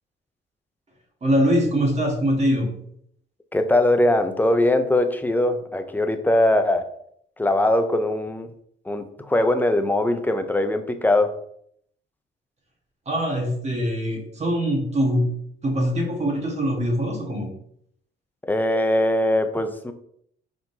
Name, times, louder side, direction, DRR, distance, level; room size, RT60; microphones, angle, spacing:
voice 1, 1.2-2.7 13.0-15.3 15.6-17.5, equal, 35° right, 0 dB, 1.6 m, -23 dB
voice 2, 3.5-6.9 7.4-8.5 8.9-11.3 18.4-19.9, left 1 dB, 10° left, 7 dB, 0.5 m, -21 dB
4.6 x 3.8 x 2.7 m, 0.67 s
cardioid pair, 90°, 20 cm